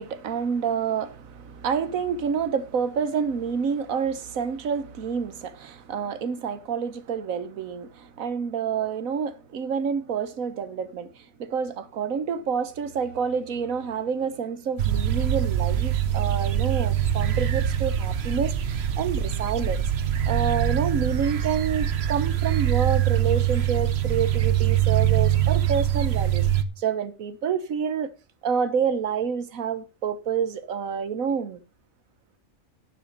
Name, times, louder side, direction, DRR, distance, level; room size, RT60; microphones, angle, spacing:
voice 1, 0.0-19.8 20.3-26.5 26.8-28.1 28.4-31.6, right 6 dB, 85° right, 1.5 m, -28 dB
sound 1, 14.8-26.6, right 10 dB, 55° right, 1.1 m, -24 dB
11.5 x 10.5 x 3.9 m
omnidirectional pair, 1.4 m